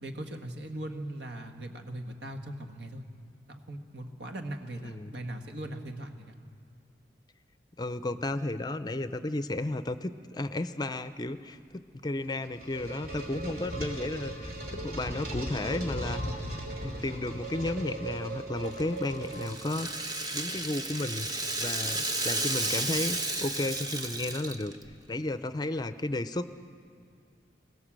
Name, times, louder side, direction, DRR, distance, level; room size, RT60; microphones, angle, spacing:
voice 1, 0.0-3.0 3.5-6.3, right 1 dB, 75° right, 5 dB, 1.6 m, -39 dB
voice 2, 7.8-16.4 16.8-19.9 20.3-24.7 25.1-26.5, left 2 dB, 25° left, 12 dB, 0.5 m, -33 dB
sound 1, 12.2-19.9, right 1 dB, 55° right, 3.1 m, -37 dB
Rattle (instrument), 18.7-24.9, right 2 dB, 20° right, 0.9 m, -33 dB
22.5 x 18.0 x 7.5 m, 2.4 s
head